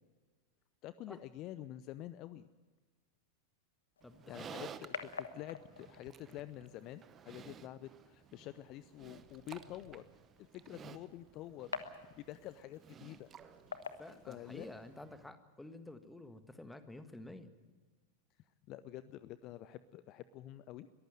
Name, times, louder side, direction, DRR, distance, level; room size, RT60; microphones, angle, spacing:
voice 1, 0.8-2.5 4.3-10.1 10.4-11.7 12.2-13.3 14.3-14.7 18.7-20.9, left 13 dB, 40° left, 15 dB, 0.6 m, -48 dB
sound 1, 4.0-15.0, left 6 dB, 70° left, 1.2 m, -50 dB
voice 2, 4.0-4.7 14.0-17.5, left 2 dB, 5° left, 10 dB, 1.6 m, -50 dB
Livestock farm animals working animals, 4.0-15.3, right 8 dB, 25° right, 0.9 m, -55 dB
22.5 x 14.5 x 9.0 m, 1.3 s
figure-of-eight pair, 90°, 0 cm